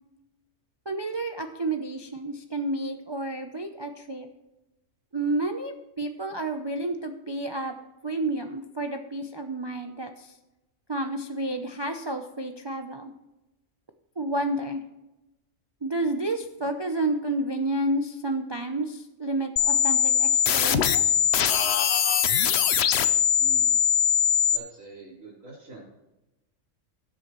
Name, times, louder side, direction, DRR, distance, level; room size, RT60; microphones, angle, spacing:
voice 1, 0.9-4.3 5.1-7.7 8.0-10.4 10.9-13.1 14.2-14.8 15.8-21.2, right 2 dB, 30° right, 5 dB, 0.5 m, -30 dB
sound 1, 19.6-24.6, left 8 dB, 60° left, 0.9 m, -21 dB
voice 2, 23.4-23.8 24.5-25.8, right 3 dB, 75° right, -9 dB, 4.3 m, -44 dB
19.5 x 8.1 x 3.1 m, 1.0 s
omnidirectional pair, 1.4 m